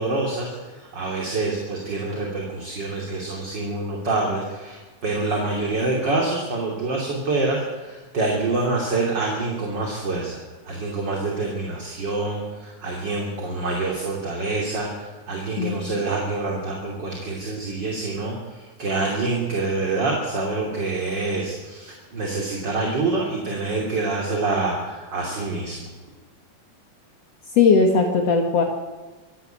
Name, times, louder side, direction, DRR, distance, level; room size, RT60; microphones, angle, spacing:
voice 1, 0.0-25.9, right 3 dB, 35° right, -1 dB, 3.4 m, -26 dB
voice 2, 27.6-28.6, left 5 dB, 60° left, 2 dB, 2.7 m, -18 dB
25.5 x 12.0 x 9.1 m, 1.3 s
omnidirectional pair, 3.4 m